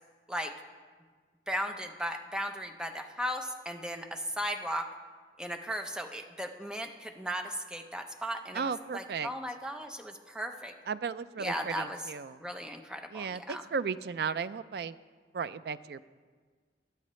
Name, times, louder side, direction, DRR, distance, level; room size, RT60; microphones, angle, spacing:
voice 1, 1.5-4.9 5.4-10.7 11.4-12.0 12.4-13.7, equal, 5° right, 5 dB, 0.7 m, -36 dB
voice 2, 8.5-9.3 10.9-12.4 13.1-15.0 15.3-16.1, right 5 dB, 60° right, 15 dB, 0.4 m, -35 dB
21.5 x 7.8 x 3.2 m, 1.5 s
head